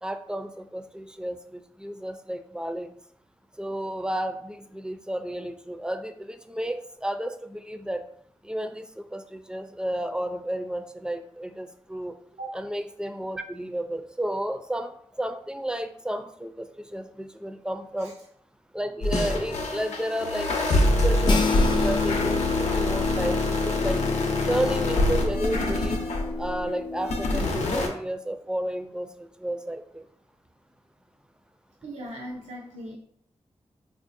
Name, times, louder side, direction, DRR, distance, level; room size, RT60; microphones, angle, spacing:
voice 1, 0.0-2.9 3.6-8.0 8.4-12.1 12.5-14.9 15.2-18.1 18.7-24.0 24.5-26.0 26.4-30.0, right 1 dB, 5° right, 7 dB, 0.4 m, -32 dB
sound 1, 19.0-26.5 27.0-27.9, left 2 dB, 85° left, 0.7 m, -25 dB
sound 2, 21.2-27.7, left 3 dB, 40° left, 0.6 m, -29 dB
voice 2, 31.8-33.0, right 1 dB, 90° right, -3 dB, 0.6 m, -38 dB
4.0 x 2.6 x 2.5 m, 0.65 s
cardioid pair, 50°, 11 cm